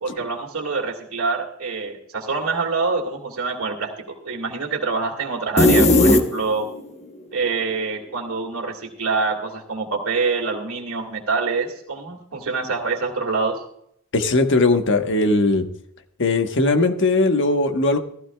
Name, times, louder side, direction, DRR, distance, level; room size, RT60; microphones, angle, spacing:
voice 1, 0.0-6.7 7.3-13.6, right 4 dB, 75° right, 0 dB, 2.3 m, -25 dB
sound 1, 5.6-6.8, left 1 dB, 30° left, 1.0 m, -15 dB
voice 2, 14.1-15.7 16.2-18.0, left 2 dB, 60° left, 5 dB, 1.3 m, -19 dB
15.5 x 15.5 x 2.3 m, 0.70 s
head